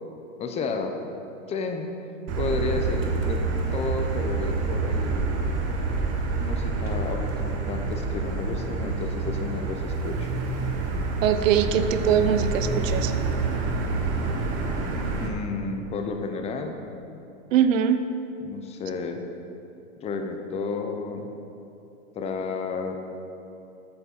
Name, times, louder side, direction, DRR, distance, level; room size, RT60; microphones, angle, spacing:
voice 1, 0.4-0.9 1.5-1.9 2.4-3.4 3.7-5.4 6.4-10.3 15.2-16.8 18.4-19.2 20.0-21.3 22.1-23.0, left 4 dB, 15° left, 5 dB, 0.5 m, -32 dB
Motor vehicle (road), 2.3-15.3, right 3 dB, 35° right, 1.0 m, -27 dB
voice 2, 11.2-13.1 17.5-18.0 18.5-18.6, right 8 dB, 65° right, 9 dB, 0.7 m, -22 dB
8.5 x 6.9 x 4.3 m, 2.9 s
hypercardioid pair, 120°, 42 cm